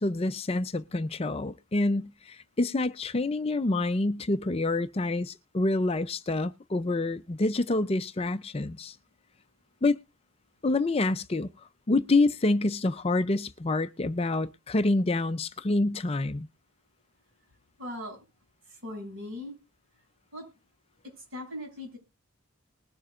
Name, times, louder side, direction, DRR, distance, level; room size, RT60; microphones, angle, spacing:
voice 1, 0.0-9.0 9.8-10.0 10.6-11.5 11.9-16.5, left 2 dB, 25° left, 0.4 m, -27 dB
voice 2, 17.8-18.2 18.7-19.6 20.3-20.5 21.0-22.0, left 1 dB, 70° right, 7.2 m, -39 dB
20.5 x 7.1 x 2.4 m
head